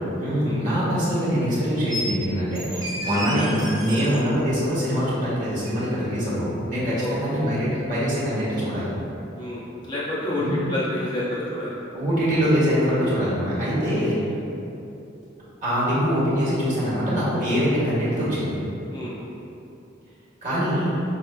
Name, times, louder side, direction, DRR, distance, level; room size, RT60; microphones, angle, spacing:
voice 1, 0.2-8.9 10.4-10.6 11.9-14.2 15.6-18.5 20.4-20.9, equal, 40° right, -10 dB, 1.5 m, -23 dB
sound 1, 1.9-2.1 2.5-4.2 5.7-5.8, equal, 20° right, 0.5 m, -31 dB
voice 2, 7.0-7.5 9.3-11.7 12.1-12.2 14.2-14.4 18.9-19.2, left 1 dB, 25° left, -8 dB, 0.6 m, -29 dB
5.2 x 4.2 x 2.2 m, 2.8 s
head